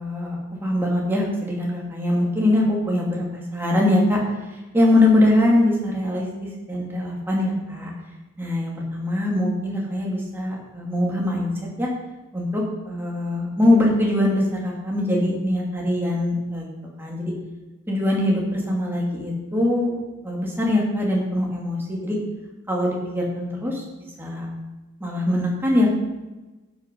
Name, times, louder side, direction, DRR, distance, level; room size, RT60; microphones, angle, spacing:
voice 1, 0.0-7.9 8.4-11.5 11.8-11.9 12.3-16.7 17.0-17.3 17.9-20.0 20.2-22.2 22.7-23.8 24.2-24.5 25.0-26.0, left 1 dB, 10° right, -3 dB, 2.6 m, -22 dB
11.5 x 8.3 x 5.3 m, 1.1 s
head